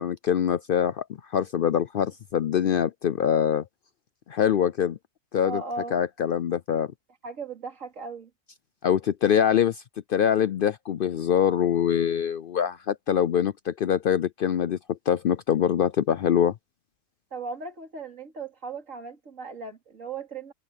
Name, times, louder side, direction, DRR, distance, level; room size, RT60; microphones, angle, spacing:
voice 1, 0.0-3.6 4.3-5.0 5.3-5.6 5.9-6.9 8.8-9.8 10.1-16.5, left 9 dB, 65° left, 0.5 m, -24 dB
voice 2, 5.4-6.0 7.2-8.3 17.3-20.5, right 4 dB, 75° right, 3.2 m, -37 dB
omnidirectional pair, 1.4 m